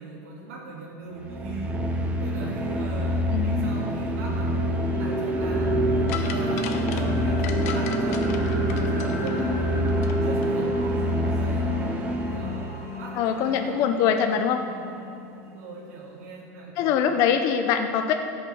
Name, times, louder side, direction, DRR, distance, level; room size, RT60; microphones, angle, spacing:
voice 1, 0.0-4.7 5.0-9.8 10.2-11.7 12.3-14.8 15.4-17.0, right 3 dB, 60° right, -5 dB, 1.9 m, -40 dB
sound 1, 1.1-12.8, left 1 dB, 15° right, 0.8 m, -27 dB
voice 2, 3.3-3.7 13.2-14.6 16.8-18.1, left 8 dB, 40° left, 6 dB, 0.5 m, -23 dB
sound 2, 3.4-15.5, right 1 dB, 35° right, 1.9 m, -30 dB
sound 3, 6.1-10.2 10.4-10.5, left 7 dB, 65° left, 0.9 m, -37 dB
15.0 x 5.5 x 6.4 m, 2.7 s
supercardioid pair, 165°, 9 cm